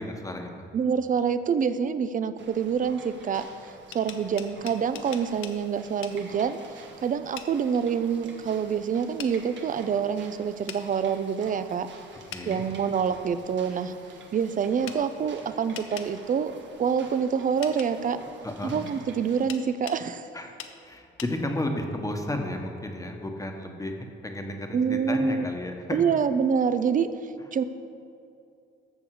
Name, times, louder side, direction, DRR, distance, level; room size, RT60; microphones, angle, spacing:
voice 1, 0.0-0.7 12.3-12.7 18.4-18.8 20.3-20.6 20.8-26.2, left 1 dB, 15° left, 3 dB, 1.2 m, -33 dB
voice 2, 0.7-3.5 3.9-11.9 12.5-13.9 14.3-16.5 16.8-18.2 18.6-20.3 24.7-25.5 25.9-27.1 27.5-27.6, right 7 dB, 40° right, 12 dB, 0.6 m, -26 dB
sound 1, 2.4-19.5, right 4 dB, 65° right, 1.4 m, -49 dB
sound 2, 3.7-5.6 6.0-6.2 7.4-7.5 9.2-9.3 10.7-10.8 12.3-12.5 14.9-15.0 15.7-16.1 17.6-17.9 19.5-20.0 20.6-20.7 21.2-21.3, left 9 dB, 85° left, 0.8 m, -40 dB
13.5 x 7.1 x 4.8 m, 2.5 s
cardioid pair, 90°, 20 cm